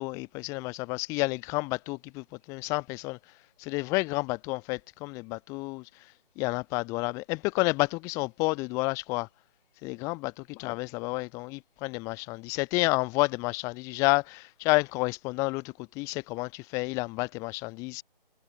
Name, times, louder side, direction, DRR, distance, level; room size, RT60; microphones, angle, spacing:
voice 1, 0.0-3.2 3.6-5.8 6.4-9.3 9.8-10.3 10.6-18.0, left 25 dB, 10° left, 7.9 m, -30 dB
figure-of-eight pair, 170°, 29 cm